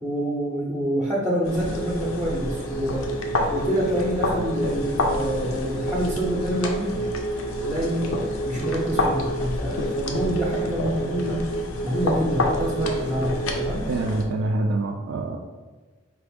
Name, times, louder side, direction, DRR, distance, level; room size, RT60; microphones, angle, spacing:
voice 1, 0.0-3.1 3.5-7.1 7.6-8.2 8.4-11.4 11.8-13.9, equal, 10° right, -5 dB, 0.5 m, -27 dB
sound 1, 1.4-14.3, left 2 dB, 90° left, 0.6 m, -29 dB
sound 2, 1.7-13.7, right 3 dB, 40° left, 0.3 m, -31 dB
voice 2, 13.9-15.4, right 2 dB, 70° right, 2 dB, 0.3 m, -25 dB
4.6 x 2.5 x 3.5 m, 1.3 s
head